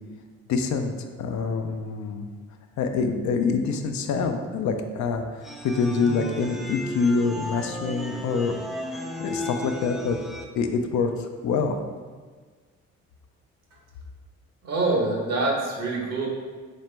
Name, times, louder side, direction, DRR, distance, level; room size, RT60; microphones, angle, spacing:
voice 1, 0.5-2.3 2.8-5.2 5.6-8.5 9.2-10.2 10.6-11.1 11.4-11.8, left 5 dB, 70° left, 6 dB, 0.5 m, -25 dB
sound 1, 5.4-10.5, equal, ahead, 0.4 m, -35 dB
voice 2, 14.6-16.3, right 2 dB, 60° right, -1 dB, 1.0 m, -25 dB
4.2 x 2.9 x 3.3 m, 1.5 s
cardioid pair, 90°, 30 cm